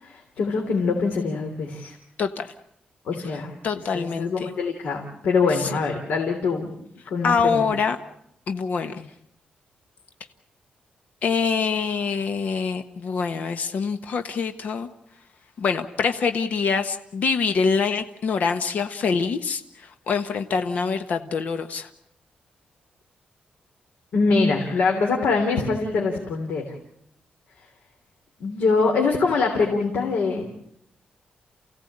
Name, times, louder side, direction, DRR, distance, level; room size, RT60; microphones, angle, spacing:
voice 1, 0.0-2.0 3.1-3.5 3.9-6.7 7.1-7.6 24.1-26.6 28.4-30.5, left 4 dB, 80° left, 1 dB, 3.4 m, -23 dB
voice 2, 2.2-2.5 3.3-3.4 3.6-4.5 5.6-5.7 7.2-8.0 8.5-9.1 11.2-14.9 15.6-21.9, left 5 dB, 60° left, 8 dB, 1.3 m, -25 dB
29.0 x 16.5 x 8.9 m, 0.75 s
wide cardioid pair, 175°, 3 cm